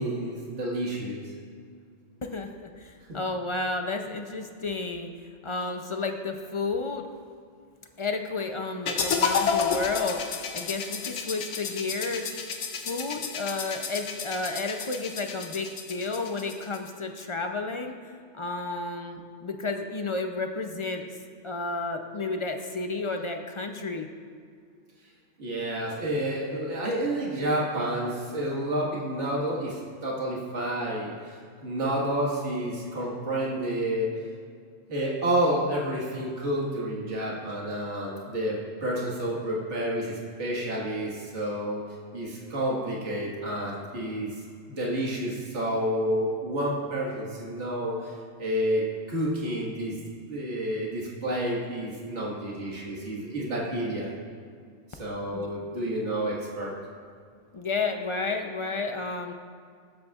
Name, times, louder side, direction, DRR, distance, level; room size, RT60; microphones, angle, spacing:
voice 1, 0.0-1.3 25.4-34.1 34.9-41.8 42.1-44.4 44.7-48.1 48.4-50.0 50.3-54.1 54.9-56.7, right 1 dB, 70° right, -4 dB, 2.0 m, -29 dB
voice 2, 2.2-5.1 5.4-7.1 8.0-10.2 10.5-12.3 12.8-17.9 18.3-21.1 21.4-24.1 55.3-55.5 57.5-59.3, left 3 dB, 40° left, 4 dB, 0.4 m, -31 dB
sound 1, 8.9-16.9, left 6 dB, 70° left, 1.1 m, -31 dB
21.5 x 7.8 x 2.4 m, 2.1 s
omnidirectional pair, 1.3 m